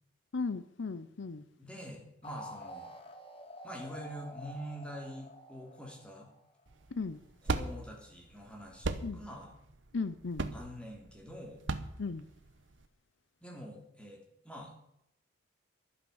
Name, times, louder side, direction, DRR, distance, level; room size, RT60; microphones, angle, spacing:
voice 1, 0.3-1.4 6.9-7.2 9.0-9.2 9.9-10.5 12.0-12.2, left 4 dB, 65° left, 14 dB, 0.6 m, -36 dB
voice 2, 1.6-2.9 3.6-6.3 7.4-9.5 10.5-11.6 13.4-14.7, equal, 5° left, -1 dB, 3.0 m, -45 dB
sound 1, 2.2-6.7, equal, 25° left, 1.4 m, -48 dB
sound 2, 6.7-12.9, right 3 dB, 70° right, 0.9 m, -37 dB
12.0 x 9.4 x 7.1 m, 0.81 s
head